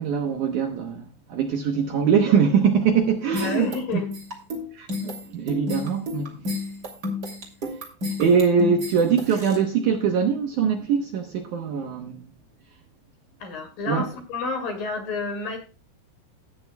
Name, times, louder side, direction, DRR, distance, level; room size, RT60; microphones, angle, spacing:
voice 1, 0.0-3.7 4.7-6.4 8.2-12.2 13.9-14.1, right 6 dB, 70° right, 2.0 m, -22 dB
sound 1, 3.3-9.6, left 2 dB, 30° right, 2.3 m, -31 dB
voice 2, 3.4-4.1 13.4-15.6, left 4 dB, 60° left, 3.7 m, -30 dB
15.5 x 9.6 x 2.2 m
omnidirectional pair, 4.6 m